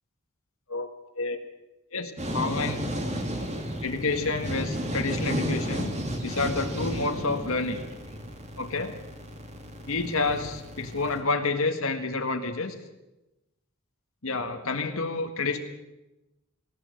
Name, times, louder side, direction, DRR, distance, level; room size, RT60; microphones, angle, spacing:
voice 1, 1.9-2.9 3.8-5.9 6.2-7.8 8.6-8.9 9.9-12.7 14.2-15.6, left 3 dB, 75° left, 4 dB, 1.7 m, -29 dB
sound 1, 2.2-11.2, equal, 30° right, 3.0 m, -33 dB
19.0 x 17.5 x 7.9 m, 1.0 s
head